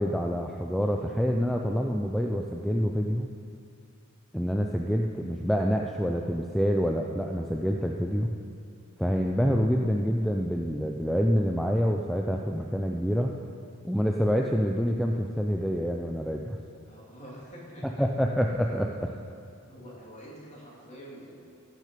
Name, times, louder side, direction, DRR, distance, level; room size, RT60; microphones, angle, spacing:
voice 1, 0.0-3.3 4.3-8.3 9.0-13.3 13.8-16.6 18.0-19.1, equal, ahead, 1 dB, 0.4 m, -27 dB
voice 2, 0.9-1.4 16.9-18.1 18.6-18.7 19.7-21.3, equal, 30° left, -5 dB, 2.5 m, -47 dB
15.5 x 6.4 x 5.2 m, 2.4 s
head